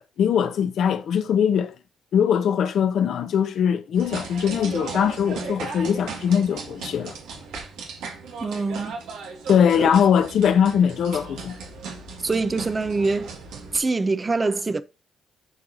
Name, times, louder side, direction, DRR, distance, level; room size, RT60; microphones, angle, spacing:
voice 1, 0.0-1.7 2.1-7.1 9.5-11.6, left 8 dB, 70° left, 0.8 m, -21 dB
sound 1, 4.0-13.8, right 4 dB, 90° right, 1.8 m, -36 dB
voice 2, 8.4-9.0 12.2-13.3 13.7-14.8, right 3 dB, 25° right, 0.6 m, -24 dB
11.0 x 4.7 x 2.7 m
cardioid pair, 90°, 0 cm